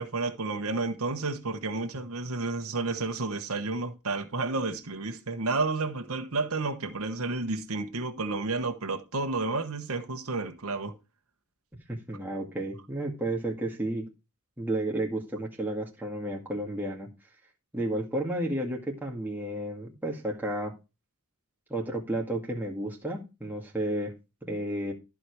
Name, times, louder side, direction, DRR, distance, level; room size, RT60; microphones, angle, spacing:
voice 1, 0.0-10.9, right 3 dB, 70° right, 1.2 m, -31 dB
voice 2, 11.9-14.1 14.6-17.1 17.7-20.7 21.7-24.1 24.4-24.9, right 1 dB, 10° right, 2.0 m, -32 dB
14.5 x 5.0 x 4.8 m
head